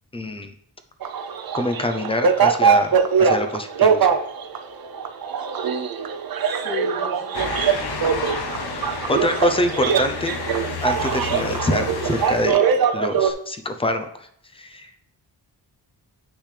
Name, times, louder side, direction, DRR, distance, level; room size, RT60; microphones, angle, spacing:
voice 1, 0.1-0.5 1.5-2.9 3.2-4.1 9.1-10.3 10.8-12.6 12.9-14.3 14.5-14.9, left 1 dB, 15° left, 7 dB, 0.5 m, -25 dB
sound 1, 1.0-13.3, right 6 dB, 55° right, 0.6 m, -22 dB
voice 2, 6.4-7.9 9.0-9.2, left 5 dB, 40° left, -3 dB, 2.3 m, -35 dB
Motor vehicle (road) / Siren, 7.3-12.5, left 5 dB, 60° left, 0.9 m, -31 dB
8.5 x 6.1 x 3.3 m, 0.67 s
wide cardioid pair, 180°, 43 cm